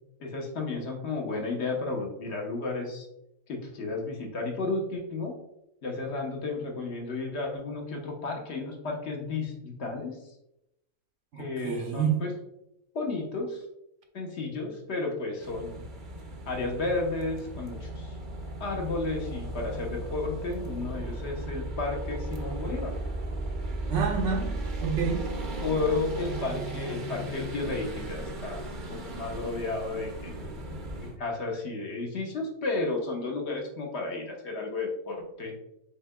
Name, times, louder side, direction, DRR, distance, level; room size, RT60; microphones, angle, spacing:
voice 1, 0.2-3.1 3.5-5.4 5.8-10.2 11.4-12.3 12.9-13.6 14.1-15.8 16.5-18.1 18.6-22.9 25.6-30.3 31.0-35.5, left 3 dB, 55° left, 1 dB, 1.1 m, -33 dB
voice 2, 11.3-12.3 23.9-25.4, right 6 dB, 70° right, 4 dB, 0.9 m, -29 dB
sound 1, 15.4-31.2, right 2 dB, 45° right, 0.7 m, -36 dB
5.5 x 4.2 x 2.2 m, 0.84 s
omnidirectional pair, 1.4 m